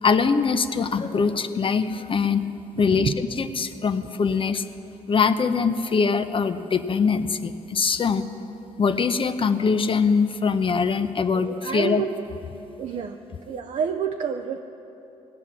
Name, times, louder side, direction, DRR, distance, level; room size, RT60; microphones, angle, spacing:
voice 1, 0.0-2.5 2.8-4.6 5.1-8.3 8.8-12.0, left 5 dB, 40° left, 10 dB, 0.7 m, -23 dB
voice 2, 2.7-3.5 4.0-4.6 11.3-12.1 12.8-13.2 13.5-14.6, right 6 dB, 65° right, 4 dB, 0.6 m, -30 dB
17.5 x 5.9 x 9.6 m, 2.9 s
cardioid pair, 65°, 13 cm